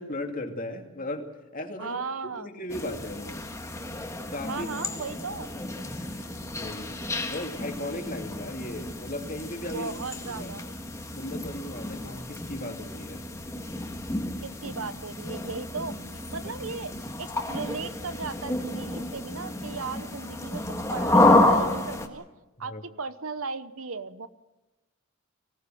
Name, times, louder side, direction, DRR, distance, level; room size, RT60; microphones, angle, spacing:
voice 1, 0.0-2.0 2.2-3.4 4.3-4.7 5.8-6.3 6.5-6.9 7.3-9.9 10.3-10.5 11.1-13.2 22.6-22.8, left 1 dB, 40° left, 4 dB, 2.5 m, -36 dB
voice 2, 1.8-2.5 4.5-5.5 9.7-10.7 14.4-16.9 17.2-22.3 22.6-22.7 23.0-24.3, right 4 dB, 70° right, 14 dB, 0.9 m, -36 dB
sound 1, 2.7-22.1, left 2 dB, 15° left, 1.8 m, -29 dB
24.5 x 18.0 x 7.7 m, 1.1 s
head